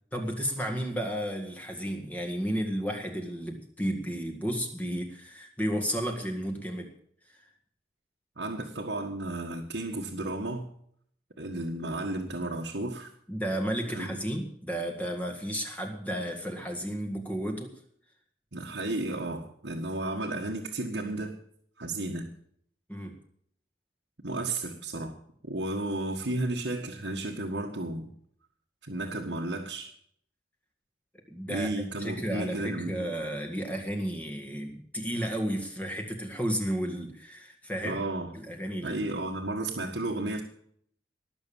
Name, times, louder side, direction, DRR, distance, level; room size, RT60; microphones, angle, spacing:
voice 1, 0.1-6.9 7.3-7.4 13.3-17.7 22.9-23.2 31.3-31.7 32.0-38.0 38.3-39.0, equal, 10° left, 2 dB, 1.9 m, -33 dB
voice 2, 8.4-10.7 11.4-13.1 13.8-14.1 18.5-21.3 21.8-22.3 24.2-25.2 25.5-28.1 28.8-29.9 31.5-33.1 37.8-38.3 38.8-40.4, right 2 dB, 90° right, -1 dB, 1.7 m, -33 dB
19.5 x 7.0 x 7.2 m, 0.66 s
head